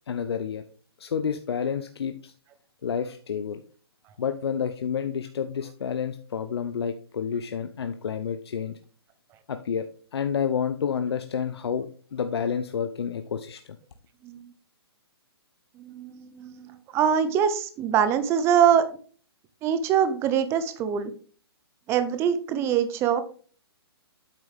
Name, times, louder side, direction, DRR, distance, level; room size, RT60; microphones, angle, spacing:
voice 1, 0.1-0.6 1.0-2.3 2.8-3.6 4.2-8.8 9.5-9.9 10.1-13.6, left 7 dB, 75° left, 8 dB, 0.7 m, -29 dB
voice 2, 15.8-18.9 19.6-21.1 21.9-23.2, right 8 dB, 20° right, 11 dB, 0.8 m, -24 dB
8.7 x 6.0 x 3.5 m, 0.42 s
hypercardioid pair, 150°, 13 cm